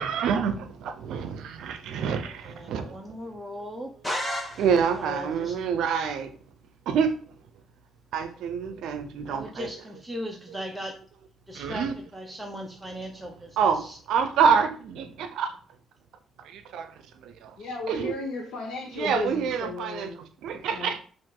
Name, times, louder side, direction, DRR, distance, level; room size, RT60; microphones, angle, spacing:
voice 1, 0.0-3.0 4.5-6.3 6.9-7.4 8.1-9.7 11.5-11.9 13.6-15.6 16.4-17.6 17.9-18.1 18.9-20.1 20.4-21.0, right 6 dB, 80° right, 0.5 m, -27 dB
voice 2, 2.2-3.9 4.9-5.6 9.3-11.0 11.5-14.0, equal, 5° right, 0.8 m, -38 dB
sound 1, 4.0-5.1, equal, 10° left, 1.2 m, -32 dB
voice 3, 17.6-20.2 20.5-20.9, left 3 dB, 80° left, 0.9 m, -35 dB
4.6 x 2.5 x 3.7 m
cardioid pair, 90°, 0 cm